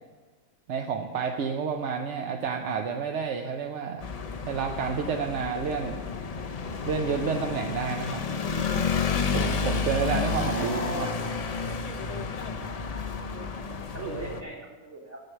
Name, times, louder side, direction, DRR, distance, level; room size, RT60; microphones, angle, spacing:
voice 1, 0.7-4.0 4.4-6.0 6.8-8.2 9.3-11.1, right 6 dB, 60° right, 3 dB, 0.8 m, -30 dB
sound 1, 4.0-14.4, left 5 dB, 75° left, 0.3 m, -31 dB
voice 2, 10.3-11.1 13.9-15.2, right 2 dB, 40° right, -5 dB, 2.7 m, -37 dB
8.0 x 7.8 x 7.4 m, 1.3 s
omnidirectional pair, 1.6 m